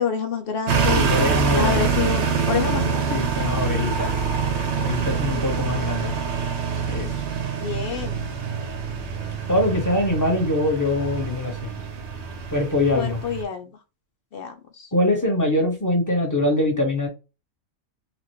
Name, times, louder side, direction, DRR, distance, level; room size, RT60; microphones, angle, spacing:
voice 1, 0.0-1.1 1.5-3.2 4.0-4.1 7.6-8.2 12.9-13.7 14.3-14.9, left 6 dB, 60° left, 5 dB, 0.6 m, -28 dB
sound 1, 0.7-13.4, right 6 dB, 60° right, 0.9 m, -25 dB
voice 2, 0.9-1.9 3.1-4.1 4.8-6.1 6.9-7.1 9.5-11.7 12.5-13.2 14.9-17.1, left 1 dB, 15° left, 0 dB, 1.1 m, -23 dB
4.1 x 2.5 x 3.1 m, 0.29 s
omnidirectional pair, 1.5 m